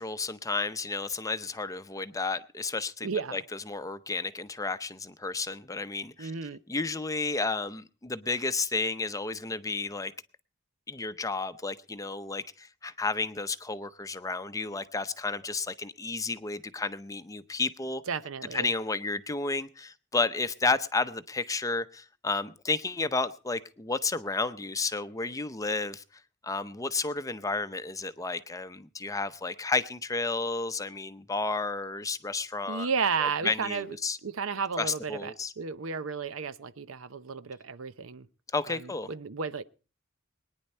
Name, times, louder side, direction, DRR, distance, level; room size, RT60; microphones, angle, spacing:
voice 1, 0.0-6.3 6.7-10.1 10.9-18.0 18.5-26.0 26.4-32.9 33.2-34.2 34.8-35.5 38.5-39.1, left 3 dB, 15° left, 0.6 m, -32 dB
voice 2, 3.0-3.4 6.2-6.6 18.1-18.7 32.7-33.9 34.2-38.3 38.7-39.6, right 5 dB, 75° right, 0.7 m, -33 dB
22.0 x 10.0 x 4.3 m
head